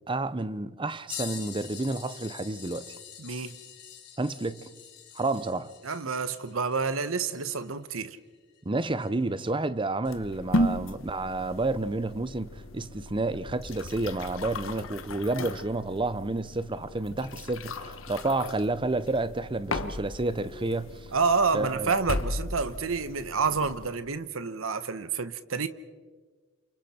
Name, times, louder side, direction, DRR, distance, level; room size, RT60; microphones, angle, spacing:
voice 1, 0.1-2.9 4.2-4.7 5.2-5.7 8.7-20.9 21.5-21.9, right 2 dB, 25° right, 0.7 m, -30 dB
sound 1, 1.1-9.3 10.0-10.2 12.4-12.5 13.6-13.7 14.8-14.9, left 10 dB, 55° left, 3.2 m, -45 dB
voice 2, 3.2-3.5 5.8-8.2 21.1-25.7, right 5 dB, 85° right, 1.1 m, -28 dB
sound 2, 10.0-23.9, left 1 dB, 75° left, 1.2 m, -35 dB
29.5 x 28.5 x 4.4 m
head